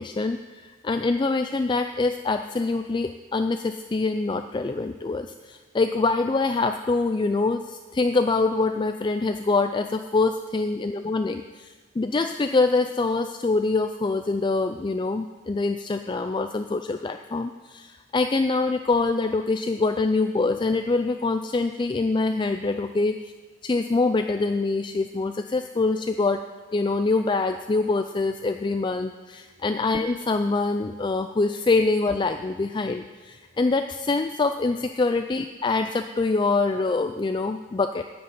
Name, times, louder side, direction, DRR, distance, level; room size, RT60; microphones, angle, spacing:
voice 1, 0.0-23.1 23.6-26.5 26.7-38.0, left 3 dB, 25° left, 7 dB, 0.3 m, -25 dB
9.8 x 7.8 x 9.5 m, 1.4 s
head